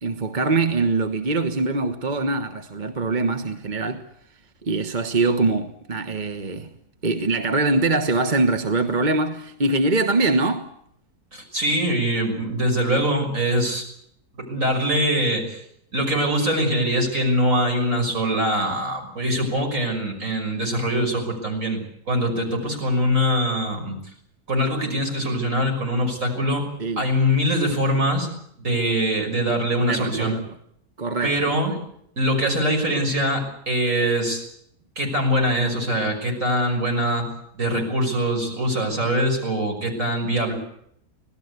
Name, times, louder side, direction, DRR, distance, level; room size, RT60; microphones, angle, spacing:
voice 1, 0.0-4.0 4.6-6.7 7.0-10.7 26.8-27.1 29.9-30.5 31.0-31.4, right 3 dB, 30° right, 1.3 m, -23 dB
voice 2, 11.3-13.8 14.5-15.6 15.9-21.8 22.1-24.0 24.5-26.7 27.0-28.3 28.6-30.3 31.2-31.7 32.2-34.4 35.0-37.3 37.5-40.5, equal, 55° right, 6.4 m, -23 dB
26.0 x 18.0 x 8.2 m
omnidirectional pair, 1.7 m